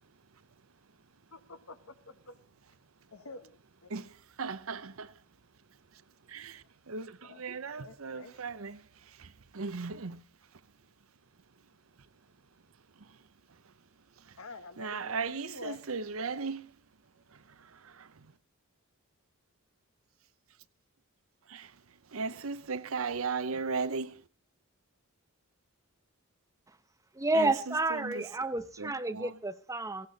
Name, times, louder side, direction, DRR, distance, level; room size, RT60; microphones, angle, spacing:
voice 1, 1.3-2.4 3.1-3.9 7.2-8.6 14.4-15.8, left 4 dB, 85° left, 1.5 m, -48 dB
voice 2, 4.4-5.2 5.9-6.0 6.3-10.2 13.0-13.2 14.2-14.4 14.8-16.7 17.3-18.3 21.5-21.7 22.1-24.2 27.3-28.2 28.8-29.4, right 4 dB, 80° right, 0.8 m, -37 dB
voice 3, 27.1-30.1, right 2 dB, 15° right, 0.8 m, -30 dB
17.0 x 16.5 x 4.0 m
head